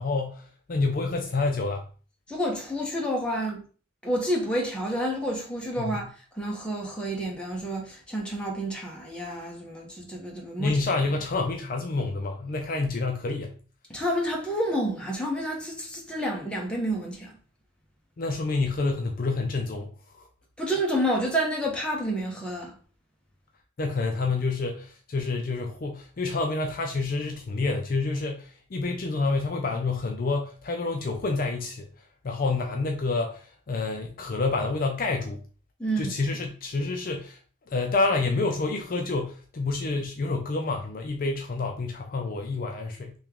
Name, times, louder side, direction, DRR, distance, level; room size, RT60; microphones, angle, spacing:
voice 1, 0.0-1.8 5.8-6.0 10.6-13.6 18.2-19.9 20.1-20.3 23.8-31.9 32.2-35.4 36.0-37.4 37.7-43.1, left 3 dB, 40° left, 0.4 m, -28 dB
voice 2, 2.3-3.6 4.0-6.1 6.3-10.8 13.9-17.4 20.6-22.7 35.8-36.1, equal, 5° left, 0.8 m, -29 dB
3.2 x 2.9 x 3.5 m
head